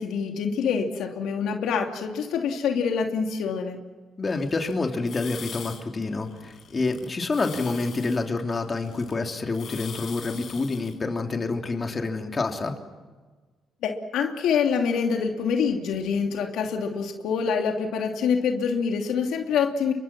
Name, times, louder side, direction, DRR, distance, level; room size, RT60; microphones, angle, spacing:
voice 1, 0.0-3.8 13.8-19.9, left 6 dB, 85° left, 3 dB, 2.8 m, -26 dB
voice 2, 4.2-12.7, left 3 dB, 35° left, 3 dB, 3.0 m, -28 dB
sound 1, 4.3-4.7 5.0-5.8 6.1-7.1 7.3-9.1 9.5-10.9, left 7 dB, 65° left, 5.0 m, -42 dB
29.5 x 24.0 x 6.1 m, 1.3 s
cardioid pair, 90°, 0 cm